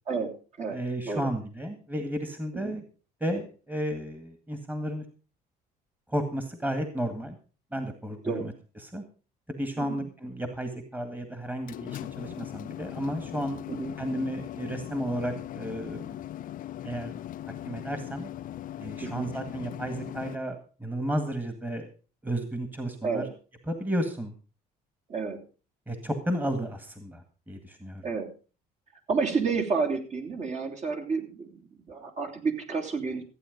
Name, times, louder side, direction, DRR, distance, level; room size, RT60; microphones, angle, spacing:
voice 1, 0.7-2.8 3.2-5.0 6.1-7.4 7.7-8.5 8.8-9.0 9.5-13.6 14.0-16.2 16.8-17.1 17.7-18.3 18.8-21.9 22.2-23.3 23.7-24.3 25.9-28.1, right 1 dB, 10° right, 8 dB, 1.9 m, -33 dB
sound 1, 11.4-20.4, left 12 dB, 55° left, 0.5 m, -39 dB
voice 2, 13.7-14.3 19.0-19.3 23.0-23.3 25.1-25.4 28.0-28.3 29.1-33.2, right 4 dB, 45° right, 1 dB, 3.1 m, -30 dB
15.0 x 8.9 x 5.2 m, 0.37 s
cardioid pair, 110°, 17 cm